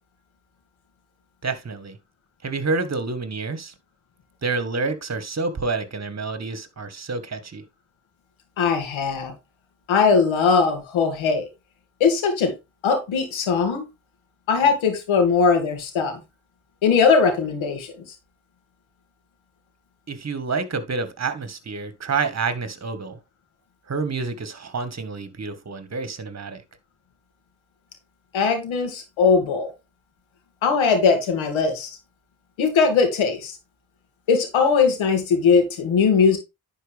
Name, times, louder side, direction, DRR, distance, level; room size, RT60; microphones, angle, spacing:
voice 1, 1.4-2.0 2.4-3.7 4.4-7.6 20.1-23.2 23.9-26.6, right 4 dB, 35° right, 1.6 m, -28 dB
voice 2, 8.6-9.3 9.9-11.5 12.0-12.5 12.8-13.9 14.5-16.2 16.8-17.9 28.3-29.7 30.6-31.9 32.6-33.6 34.3-36.4, left 5 dB, 85° left, 2.5 m, -20 dB
10.5 x 4.6 x 3.5 m
supercardioid pair, 60°, 46 cm